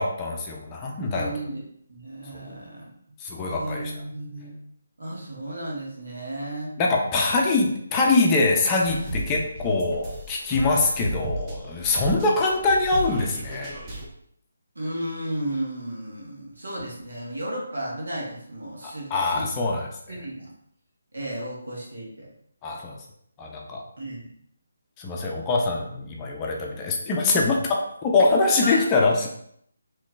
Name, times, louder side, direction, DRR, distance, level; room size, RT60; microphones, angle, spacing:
voice 1, 0.0-1.3 2.3-2.5 3.2-3.9 6.8-13.7 18.8-19.9 22.6-23.0 23.4-23.8 25.0-29.3, left 3 dB, 20° left, -1 dB, 0.5 m, -23 dB
voice 2, 1.0-1.6 1.9-2.9 3.5-4.6 5.0-6.8 14.7-19.6 20.1-20.5 21.1-22.3 24.0-24.3 28.6-28.8, right 1 dB, 85° right, -3 dB, 1.4 m, -34 dB
sound 1, 8.8-14.1, right 1 dB, 20° right, 0.7 m, -34 dB
3.6 x 3.0 x 2.5 m, 0.69 s
figure-of-eight pair, 160°, 0 cm